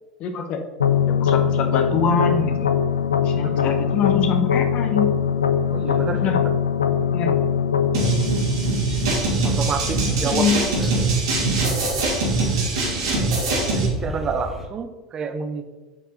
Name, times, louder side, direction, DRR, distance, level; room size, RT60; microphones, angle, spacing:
voice 1, 0.2-0.6 1.1-2.7 3.2-5.1 6.1-6.4 7.1-7.4 10.1-10.6, left 6 dB, 45° left, 6 dB, 1.2 m, -24 dB
sound 1, 0.8-9.8, left 8 dB, 75° left, 0.6 m, -22 dB
voice 2, 3.4-3.9 5.7-6.5 9.4-10.5 10.8-10.9 13.6-15.7, right 5 dB, 30° right, 8 dB, 1.0 m, -29 dB
sound 2, 7.9-13.9, right 3 dB, 65° right, 3.1 m, -22 dB
sound 3, 8.9-14.7, equal, 5° right, 2.3 m, -33 dB
9.9 x 5.8 x 4.3 m, 1.2 s
figure-of-eight pair, 75°, 3 cm